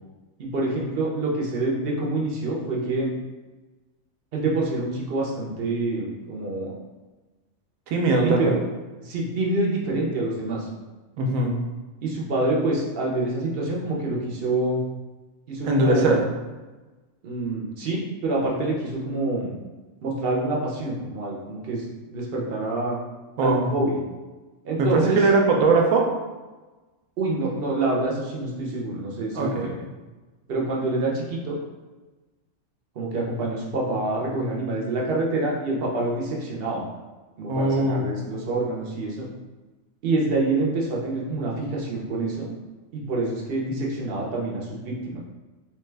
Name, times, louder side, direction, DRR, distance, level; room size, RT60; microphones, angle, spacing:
voice 1, 0.4-3.1 4.3-6.7 8.2-8.5 9.0-10.7 12.0-14.8 15.5-16.2 17.2-19.5 20.0-23.0 23.4-24.0 24.6-25.2 27.2-29.7 30.5-31.5 32.9-36.8 37.4-39.3 40.0-42.6 42.9-45.2, right 2 dB, 55° right, -3 dB, 0.8 m, -26 dB
voice 2, 7.9-8.6 11.2-11.5 15.6-16.2 23.4-23.6 24.8-26.1 29.3-29.7 37.5-38.2, right 2 dB, 80° right, 1 dB, 1.0 m, -20 dB
3.1 x 2.3 x 3.2 m, 1.2 s
omnidirectional pair, 1.4 m